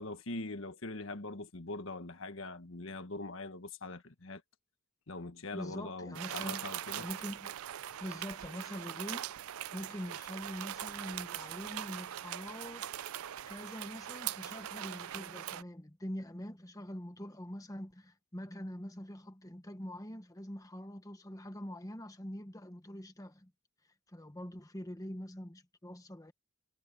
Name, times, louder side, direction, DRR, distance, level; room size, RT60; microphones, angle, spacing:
voice 1, 0.0-4.4 5.1-7.1, left 2 dB, 65° left, 1.5 m, -42 dB
voice 2, 5.5-6.7 7.0-7.5 8.0-9.3 9.7-12.9 13.5-23.5 24.1-26.3, equal, 15° left, 1.4 m, -44 dB
sound 1, 6.1-15.6, right 11 dB, 90° right, 0.5 m, -41 dB
head